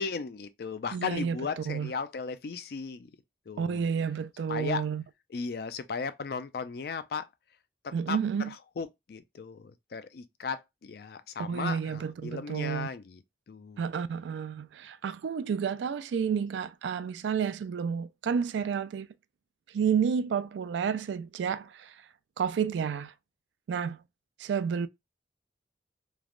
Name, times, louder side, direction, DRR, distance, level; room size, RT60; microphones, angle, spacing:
voice 1, 0.0-3.1 3.5-3.8 4.5-4.8 5.3-7.3 7.8-8.2 8.5-13.2 13.5-13.8, left 5 dB, 60° left, 0.4 m, -36 dB
voice 2, 0.9-1.9 3.6-5.0 7.9-8.5 11.4-12.9 13.8-19.1 19.7-21.9 22.4-23.1 23.7-24.0 24.4-24.9, right 7 dB, 85° right, 0.3 m, -30 dB
3.2 x 2.1 x 2.4 m
head